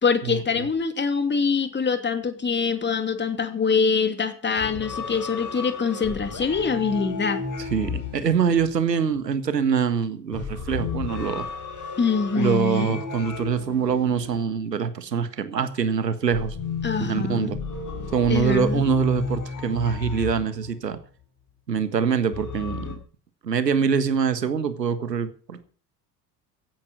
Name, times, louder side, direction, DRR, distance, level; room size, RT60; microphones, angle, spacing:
voice 1, 0.0-7.4 12.0-13.0 16.8-17.5 18.3-18.8, left 5 dB, 20° left, 9 dB, 2.7 m, -24 dB
sound 1, 4.6-9.2 10.3-15.1 16.3-21.0 22.3-22.9, left 5 dB, 40° left, 6.6 m, -33 dB
voice 2, 7.7-11.5 12.3-16.5 17.0-17.6 18.1-21.0 21.7-23.0 23.4-25.6, right 6 dB, 85° right, 12 dB, 1.6 m, -24 dB
16.0 x 10.5 x 6.3 m, 0.40 s
figure-of-eight pair, 65°, 48 cm